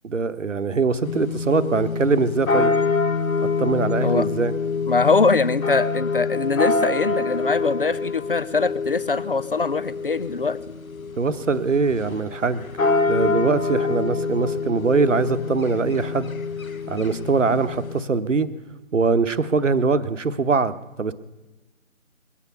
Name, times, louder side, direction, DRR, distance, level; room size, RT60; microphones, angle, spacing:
voice 1, 0.0-2.7 3.4-4.5 11.2-12.7 13.1-16.3 16.9-18.5 18.9-21.1, right 4 dB, 65° right, 14 dB, 1.0 m, -22 dB
sound 1, 1.0-18.0, left 4 dB, 85° left, 1.0 m, -26 dB
voice 2, 4.9-10.6, left 4 dB, 45° left, 16 dB, 0.6 m, -22 dB
21.5 x 8.5 x 6.8 m, 1.1 s
figure-of-eight pair, 160°, 41 cm